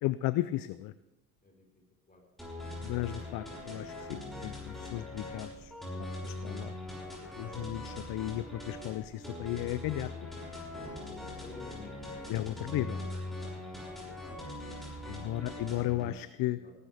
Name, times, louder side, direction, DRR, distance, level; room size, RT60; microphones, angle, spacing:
voice 1, 0.0-0.9 2.8-5.7 6.0-6.7 7.4-10.3 12.3-13.2 15.1-16.6, left 15 dB, 45° left, 14 dB, 0.5 m, -35 dB
sound 1, 2.4-16.1, left 1 dB, ahead, 6.2 m, -41 dB
voice 2, 11.1-12.3 16.5-16.7, left 3 dB, 20° left, 1 dB, 4.3 m, -51 dB
18.0 x 12.0 x 3.5 m, 0.95 s
supercardioid pair, 100°, 47 cm